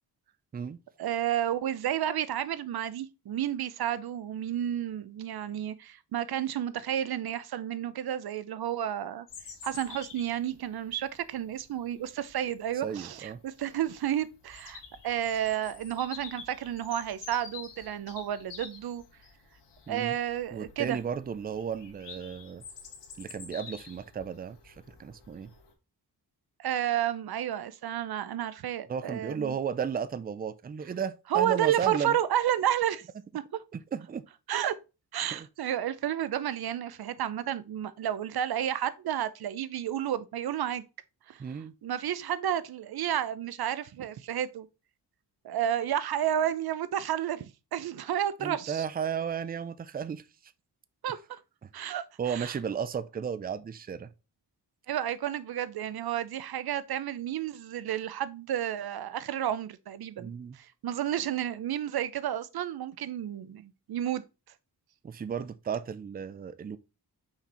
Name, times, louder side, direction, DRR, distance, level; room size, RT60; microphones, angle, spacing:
voice 1, 1.0-9.3 9.6-19.0 19.9-21.0 26.6-29.6 31.3-33.0 33.3-33.4 34.5-34.7 35.1-40.8 41.3-41.4 41.8-44.7 45.4-48.9 51.0-51.2 51.7-52.5 54.9-64.2, right 10 dB, 65° right, 0.6 m, -31 dB
Bird vocalization bird call bird song, 9.3-25.7, left 5 dB, 85° left, 1.7 m, -49 dB
voice 2, 12.8-13.4 19.9-20.2 20.5-22.6 23.2-24.7 25.0-25.5 28.9-32.2 33.7-34.2 35.3-35.5 41.4-41.7 48.4-50.2 52.2-54.1 60.2-60.6 65.0-66.8, right 7 dB, 25° right, 0.4 m, -34 dB
5.8 x 4.3 x 4.2 m
wide cardioid pair, 130°, 41 cm